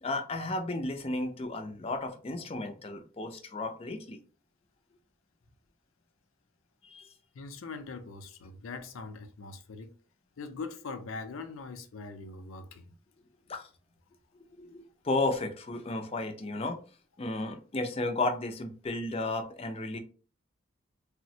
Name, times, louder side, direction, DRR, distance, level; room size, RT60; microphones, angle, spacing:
voice 1, 0.0-4.2 6.8-7.1 13.5-13.7 14.6-16.8 17.2-20.0, left 2 dB, 30° left, 0.4 m, -33 dB
voice 2, 7.3-9.9 10.4-12.9, left 4 dB, 85° left, 0.5 m, -42 dB
3.3 x 2.1 x 2.7 m
head